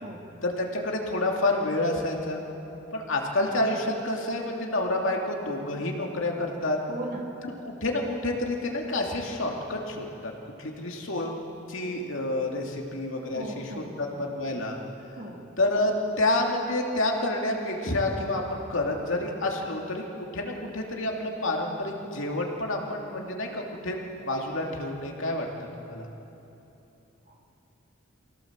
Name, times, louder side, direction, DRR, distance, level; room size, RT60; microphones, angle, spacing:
voice 1, 0.4-2.4 2.9-6.8 7.4-10.3 10.6-11.4 11.7-14.8 15.6-24.0 24.2-25.5 25.8-26.1, left 2 dB, 65° left, 0 dB, 2.7 m, -29 dB
voice 2, 6.9-7.3 13.3-13.9 15.2-15.4 27.3-27.4, right 1 dB, 40° right, 0 dB, 2.5 m, -37 dB
24.5 x 16.5 x 7.5 m, 3.0 s
head